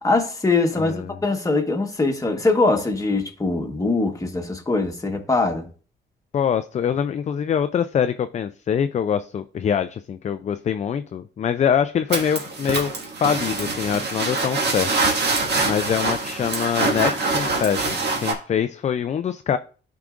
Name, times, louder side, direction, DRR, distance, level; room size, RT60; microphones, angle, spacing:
voice 1, 0.0-5.7, left 3 dB, 15° left, 3 dB, 1.4 m, -22 dB
voice 2, 0.8-1.2 6.3-12.9 13.2-14.9 15.6-19.6, left 8 dB, 35° left, 10 dB, 0.4 m, -24 dB
sound 1, 12.1-18.3, right 3 dB, 60° right, 1.8 m, -24 dB
12.0 x 4.8 x 2.5 m, 0.39 s
cardioid pair, 90°, 20 cm